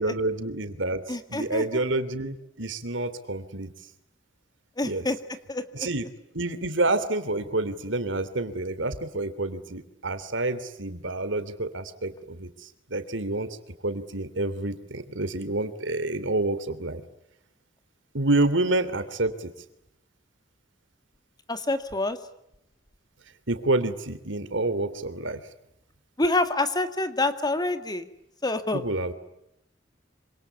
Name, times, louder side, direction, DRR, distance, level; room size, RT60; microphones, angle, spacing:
voice 1, 0.0-3.7 4.8-5.1 5.7-6.0 6.3-13.6 13.8-17.0 18.1-19.5 23.5-25.4 28.7-29.1, right 2 dB, 70° right, 12 dB, 3.0 m, -28 dB
voice 2, 1.1-1.8 4.8-5.2 5.5-5.9 21.5-22.2 26.2-28.1 28.4-28.8, left 2 dB, 20° left, 9 dB, 2.1 m, -27 dB
27.0 x 26.0 x 8.5 m, 0.81 s
head